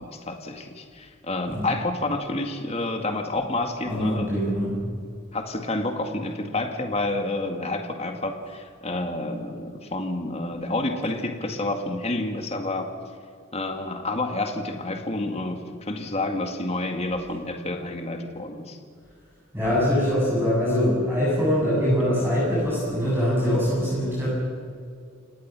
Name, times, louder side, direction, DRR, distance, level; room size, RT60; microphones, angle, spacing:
voice 1, 0.0-4.8 5.3-12.9 13.5-18.8, left 2 dB, 30° left, 4 dB, 2.2 m, -29 dB
voice 2, 3.8-4.7 19.5-24.3, equal, 10° right, -8 dB, 7.7 m, -23 dB
29.5 x 18.0 x 6.2 m, 2.2 s
head